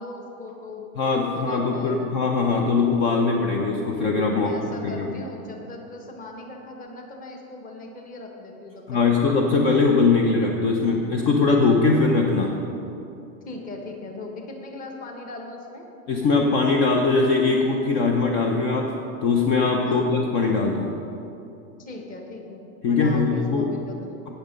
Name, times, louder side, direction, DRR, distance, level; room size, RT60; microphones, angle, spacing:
voice 1, 0.0-0.9 1.3-2.3 4.3-9.2 13.5-15.9 19.8-20.1 21.8-24.3, left 2 dB, 20° left, 2 dB, 1.2 m, -39 dB
voice 2, 1.0-4.5 4.8-5.1 8.9-12.5 16.1-18.9 19.2-20.9 22.8-23.7, left 4 dB, 35° left, 1 dB, 0.8 m, -21 dB
17.0 x 6.7 x 5.2 m, 2.8 s
supercardioid pair, 170°, 42 cm